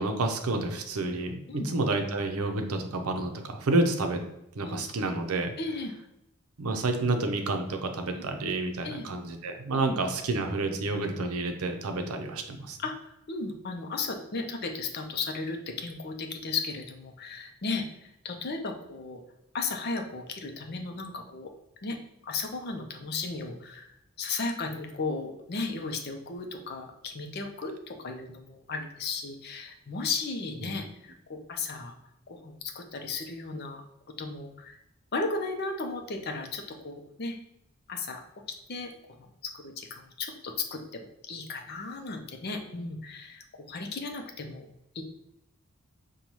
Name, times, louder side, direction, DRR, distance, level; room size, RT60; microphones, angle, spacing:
voice 1, 0.0-4.2 4.6-5.5 6.6-12.8 30.6-30.8, right 2 dB, 85° right, 5 dB, 0.6 m, -29 dB
voice 2, 5.6-5.9 8.1-8.2 8.8-9.1 9.7-10.0 12.1-12.2 12.8-12.9 13.3-19.2 19.5-21.5 21.8-22.0 22.2-23.9 24.2-31.9 32.3-33.8 34.2-34.8 35.1-37.4 37.9-38.2 38.7-38.9 39.2-44.7 44.9-45.0, left 3 dB, 45° left, 4 dB, 0.5 m, -35 dB
5.3 x 2.3 x 3.0 m, 0.84 s
head